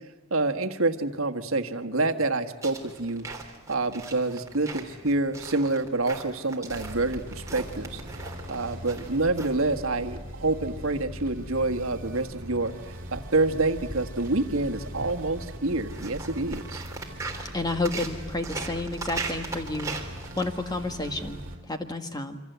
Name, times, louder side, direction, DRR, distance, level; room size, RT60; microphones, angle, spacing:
voice 1, 0.3-8.0 8.5-12.7 13.1-16.8, right 2 dB, 70° right, 7 dB, 1.5 m, -27 dB
sound 1, 2.6-20.4, right 3 dB, 15° right, 3.2 m, -41 dB
sound 2, 6.7-21.6, equal, 40° right, 3.8 m, -41 dB
voice 2, 17.5-20.0 20.3-21.4 21.7-22.4, left 2 dB, 20° left, 7 dB, 1.6 m, -30 dB
27.0 x 25.5 x 8.0 m, 1.1 s
head